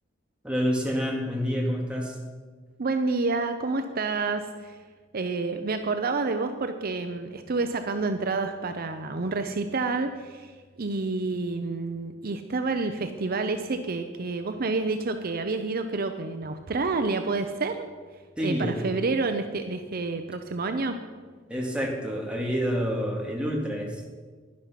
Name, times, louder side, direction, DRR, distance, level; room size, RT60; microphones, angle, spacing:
voice 1, 0.4-2.2 18.4-18.9 21.5-24.0, equal, 5° right, -2 dB, 2.2 m, -28 dB
voice 2, 2.8-4.8 5.1-10.5 10.8-17.9 18.4-21.0, right 3 dB, 50° right, 7 dB, 0.6 m, -29 dB
11.5 x 11.0 x 5.8 m, 1.5 s
head